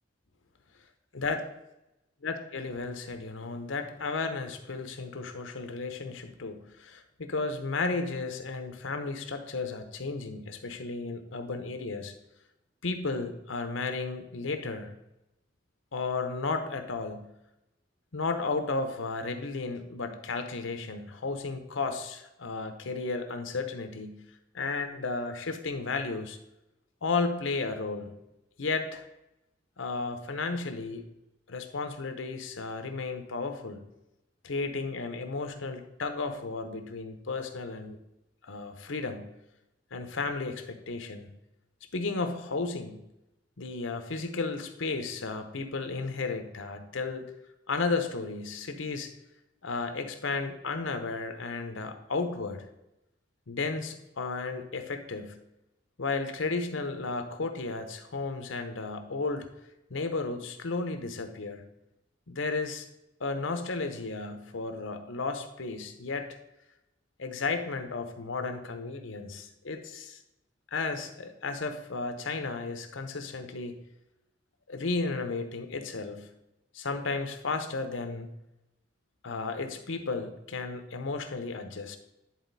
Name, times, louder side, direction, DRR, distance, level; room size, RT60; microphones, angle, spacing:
voice 1, 2.2-12.1 12.8-15.0 15.9-17.3 18.1-24.2 24.5-26.4 27.0-28.1 28.6-29.0 29.8-31.0 31.5-33.8 34.4-38.0 38.4-39.3 39.9-41.3 41.9-43.0 43.6-47.3 47.7-49.1 49.6-52.7 53.5-55.4 56.0-59.5 59.9-61.7 62.3-62.9 63.2-66.4 67.2-70.2 70.7-73.8 74.7-76.3 76.7-78.3 79.2-82.0, left 3 dB, 80° left, 7 dB, 0.9 m, -33 dB
10.0 x 4.1 x 4.1 m, 0.90 s
head